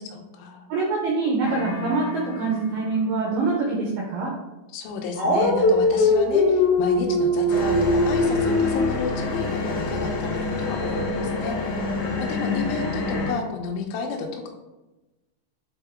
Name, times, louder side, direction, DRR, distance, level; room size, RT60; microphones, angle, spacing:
voice 1, 0.1-0.7 4.7-11.8 12.2-14.5, left 4 dB, 85° left, 2 dB, 3.1 m, -32 dB
voice 2, 0.7-4.3, right 3 dB, 85° right, -3 dB, 2.2 m, -25 dB
sound 1, 1.4-3.4, left 6 dB, 50° left, 3.3 m, -36 dB
Dog, 5.2-8.9, left 2 dB, 45° right, 1.4 m, -20 dB
sound 2, 7.5-13.3, left 3 dB, 65° left, 2.9 m, -27 dB
8.0 x 3.7 x 3.5 m, 1.1 s
omnidirectional pair, 5.6 m